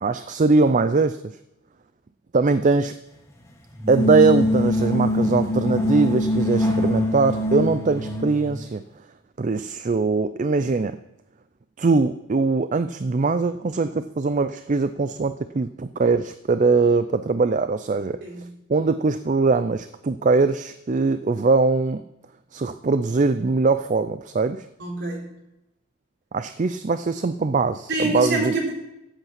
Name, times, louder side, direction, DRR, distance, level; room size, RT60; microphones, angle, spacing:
voice 1, 0.0-1.2 2.3-2.9 3.9-8.8 9.4-11.0 11.8-18.2 18.7-22.0 22.5-24.7 26.3-28.5, right 3 dB, 35° right, 11 dB, 0.4 m, -21 dB
sound 1, 3.8-8.5, left 1 dB, 15° left, 1.5 m, -23 dB
voice 2, 24.8-25.2 27.9-28.7, right 2 dB, 55° right, -2 dB, 4.0 m, -25 dB
15.0 x 8.1 x 5.9 m, 0.89 s
head